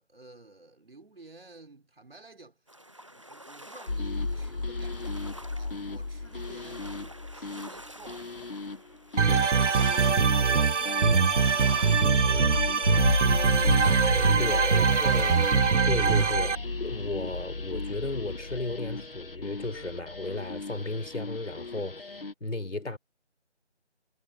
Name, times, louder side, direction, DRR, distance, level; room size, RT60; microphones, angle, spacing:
voice 1, 0.0-2.6 3.1-8.3 9.3-9.9 10.3-12.4 12.6-13.5, right 3 dB, 55° right, 5.3 m, -52 dB
sound 1, 2.7-16.4, right 1 dB, 25° right, 1.0 m, -47 dB
sound 2, 3.9-22.3, left 3 dB, 50° left, 1.6 m, -33 dB
sound 3, 9.2-16.5, right 5 dB, 80° right, 0.8 m, -23 dB
voice 2, 11.1-11.5 14.4-15.4 15.9-22.1 22.4-23.0, left 2 dB, 80° left, 4.1 m, -34 dB
figure-of-eight pair, 175°, 35 cm